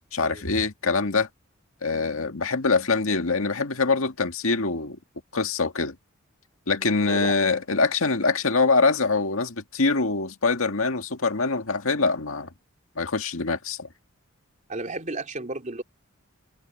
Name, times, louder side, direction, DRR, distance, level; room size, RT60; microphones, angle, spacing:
voice 1, 0.1-1.3 1.8-5.0 5.3-6.0 6.7-12.5 13.0-13.9, left 4 dB, 80° left, 1.9 m, -24 dB
voice 2, 6.8-7.4 14.7-15.8, right 2 dB, 35° right, 3.3 m, -34 dB
head